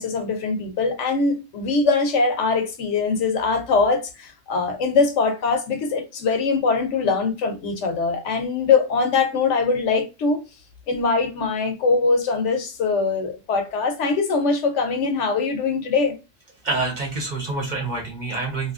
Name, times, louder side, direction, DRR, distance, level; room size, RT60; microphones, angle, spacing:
voice 1, 0.0-10.4 10.9-16.2, left 4 dB, 70° left, 0.9 m, -22 dB
voice 2, 16.6-18.7, right 3 dB, 40° right, 0.8 m, -27 dB
2.8 x 2.4 x 2.4 m
omnidirectional pair, 1.3 m